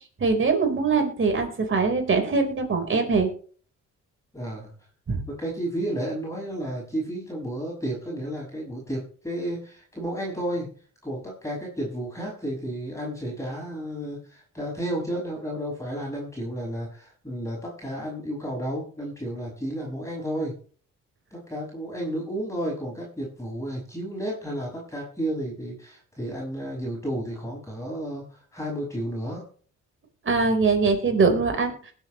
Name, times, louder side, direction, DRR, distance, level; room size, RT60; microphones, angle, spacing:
voice 1, 0.2-3.3 5.1-5.2 30.2-31.8, right 4 dB, 40° right, 4 dB, 4.3 m, -22 dB
voice 2, 4.3-4.7 5.4-10.7 11.0-20.5 21.3-29.4, right 1 dB, 10° left, -4 dB, 6.1 m, -32 dB
20.5 x 8.1 x 3.1 m, 0.43 s
cardioid pair, 90°, 30 cm